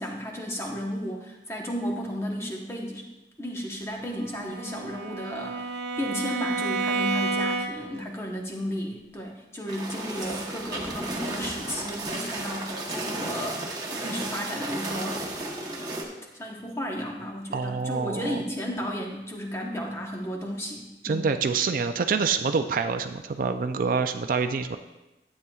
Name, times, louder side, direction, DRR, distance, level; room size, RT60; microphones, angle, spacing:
voice 1, 0.0-3.0 3.4-15.9 16.3-21.2, equal, 15° left, 0 dB, 1.0 m, -34 dB
Bowed string instrument, 4.2-8.0, right 3 dB, 85° right, 0.7 m, -30 dB
sound 1, 9.7-16.0, right 2 dB, 20° right, 1.0 m, -34 dB
voice 2, 17.5-18.4 21.0-24.8, right 5 dB, 50° right, 8 dB, 0.4 m, -26 dB
12.0 x 8.4 x 2.3 m, 1.0 s
head